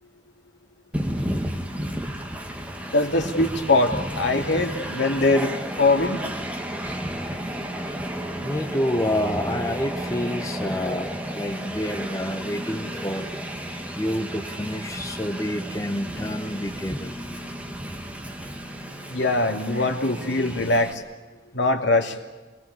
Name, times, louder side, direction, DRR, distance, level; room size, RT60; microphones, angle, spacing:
Train, 0.9-20.9, equal, 10° right, 2.1 m, -32 dB
voice 1, 2.9-6.2 19.1-21.0 21.5-22.1, left 2 dB, 80° left, 2.9 m, -22 dB
voice 2, 8.4-13.3 14.0-17.2, left 1 dB, 20° left, 1.1 m, -28 dB
27.0 x 19.5 x 8.5 m
head